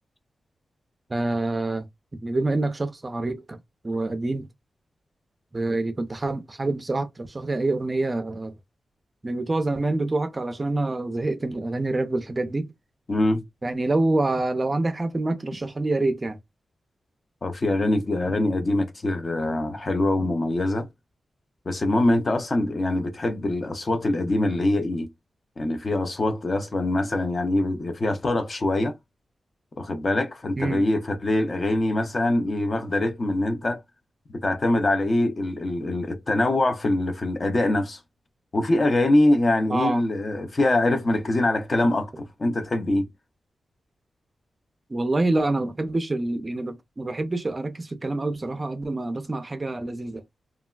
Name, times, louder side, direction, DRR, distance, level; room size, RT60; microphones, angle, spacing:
voice 1, 1.1-1.9 2.2-3.6 3.8-4.5 5.5-8.5 9.2-12.7 13.6-16.4 30.6-30.8 39.7-40.0 44.9-50.2, right 2 dB, 25° right, 0.4 m, -26 dB
voice 2, 13.1-13.5 17.4-20.9 21.7-25.1 25.6-28.9 29.8-33.8 34.3-38.0 38.5-43.1, left 1 dB, 35° left, 0.5 m, -23 dB
3.2 x 2.2 x 2.3 m
wide cardioid pair, 145°, 0 cm